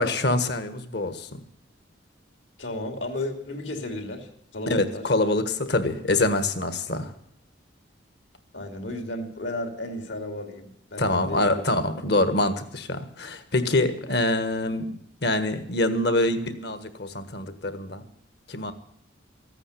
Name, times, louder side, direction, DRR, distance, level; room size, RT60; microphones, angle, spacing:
voice 1, 0.0-1.4 4.7-7.1 11.0-18.0 18.5-18.7, left 2 dB, 60° left, 11 dB, 1.5 m, -25 dB
voice 2, 2.6-5.1 8.5-11.6, left 1 dB, 75° left, 4 dB, 3.1 m, -33 dB
15.0 x 9.0 x 8.5 m, 0.72 s
head